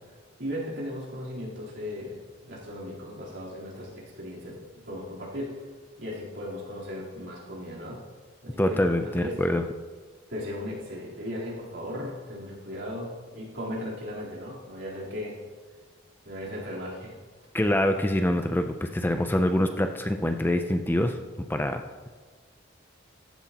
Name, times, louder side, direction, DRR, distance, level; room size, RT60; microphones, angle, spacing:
voice 1, 0.4-4.6 4.9-5.5 6.0-8.0 8.4-9.3 10.3-15.4 16.2-17.1, left 1 dB, 70° right, -6 dB, 3.6 m, -37 dB
voice 2, 8.6-9.6 17.5-21.2 21.5-21.8, left 1 dB, 10° left, 6 dB, 0.4 m, -25 dB
14.5 x 11.0 x 2.9 m, 1.4 s
head